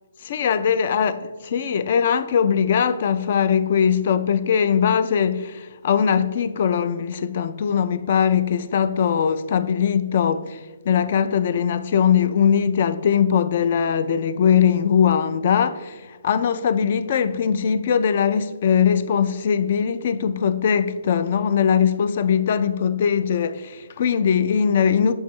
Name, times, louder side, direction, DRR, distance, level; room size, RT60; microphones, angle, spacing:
voice 1, 0.2-1.1 1.5-10.6 10.9-25.1, left 7 dB, 35° left, 0.3 m, -20 dB
6.3 x 5.9 x 3.1 m
hypercardioid pair, 170°, 0 cm